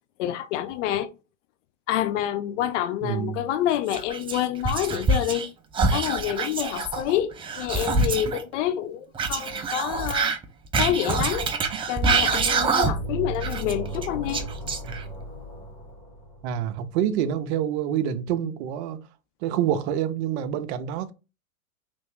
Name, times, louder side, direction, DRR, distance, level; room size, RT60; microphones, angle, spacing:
voice 1, 0.2-1.1 1.9-5.5 5.9-10.3 10.8-11.5 11.9-14.4, left 11 dB, 55° left, 0.7 m, -27 dB
voice 2, 3.0-3.5 14.8-15.0 16.4-19.0 19.4-21.1, right 10 dB, 50° right, 0.6 m, -27 dB
Whispering, 3.9-5.5 5.7-8.4 9.1-13.1 13.4-15.2, right 4 dB, 15° right, 0.4 m, -25 dB
sound 1, 12.8-16.6, right 1 dB, 80° left, 2.1 m, -35 dB
3.3 x 2.6 x 3.3 m
hypercardioid pair, 95°, 42 cm